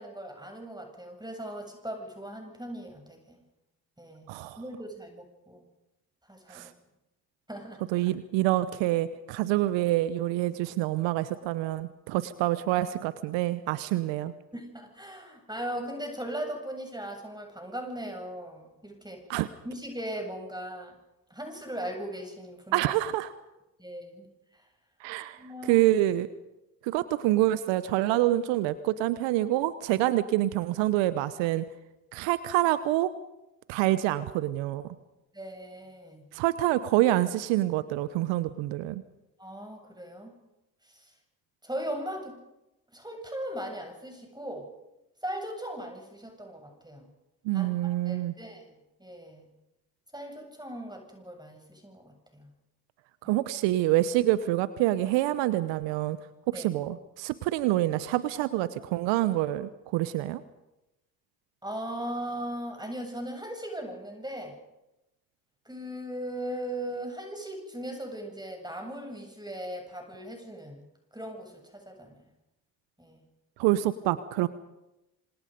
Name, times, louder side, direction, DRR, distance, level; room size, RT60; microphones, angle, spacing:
voice 1, 0.0-3.4 4.0-4.3 4.5-5.6 6.3-6.7 7.5-8.2 14.5-19.2 19.6-21.0 21.3-22.8 23.8-24.3 24.5-24.6 25.4-25.9 35.3-36.2 39.4-40.3 40.8-41.1 41.6-42.4 42.9-44.7 45.2-47.1 47.5-49.5 50.1-52.5 53.3-53.4 56.5-56.7 61.6-64.6 65.7-70.8 71.1-72.2 73.0-73.2, right 1 dB, 10° right, 3 dB, 7.6 m, -38 dB
voice 2, 4.3-4.6 6.5-6.7 7.9-14.3 19.3-19.5 22.7-23.3 25.0-26.3 26.8-31.6 32.1-33.1 33.7-34.9 36.3-39.0 47.4-48.3 53.2-56.2 56.5-60.4 73.6-74.5, right 15 dB, 75° right, 15 dB, 1.0 m, -26 dB
27.0 x 26.5 x 5.3 m, 0.95 s
hypercardioid pair, 45°, 45 cm